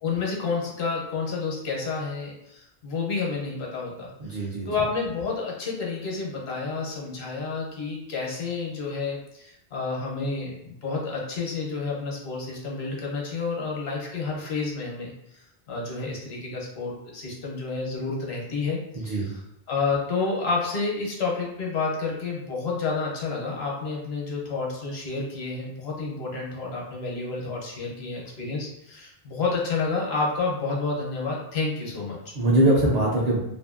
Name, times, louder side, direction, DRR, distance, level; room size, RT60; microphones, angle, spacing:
voice 1, 0.0-15.1 15.7-19.4 19.7-32.2, left 4 dB, 80° left, -2 dB, 1.0 m, -30 dB
voice 2, 4.2-4.7 18.9-19.3 32.3-33.4, right 1 dB, 50° right, -4 dB, 0.5 m, -22 dB
2.6 x 2.5 x 2.4 m, 0.81 s
omnidirectional pair, 1.1 m